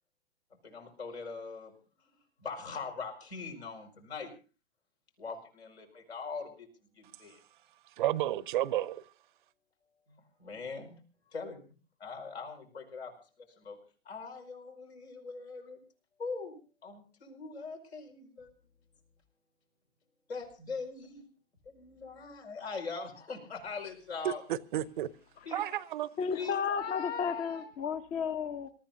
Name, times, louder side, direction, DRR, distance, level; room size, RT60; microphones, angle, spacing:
voice 1, 0.6-1.7 2.4-4.3 5.2-6.7 7.0-7.4 10.1-11.0 11.3-11.6 12.0-13.1 13.6-13.8 14.0-15.8 16.2-16.6 16.8-18.5 20.3-21.3 21.6-24.4 25.4-25.6 26.3-27.6, left 4 dB, 75° left, 5.2 m, -41 dB
voice 2, 8.0-9.0 24.2-25.1 25.5-26.1, right 13 dB, 50° right, 0.8 m, -31 dB
voice 3, 26.2-28.7, left 6 dB, 25° left, 0.8 m, -33 dB
27.0 x 14.0 x 2.6 m
figure-of-eight pair, 110°, 32 cm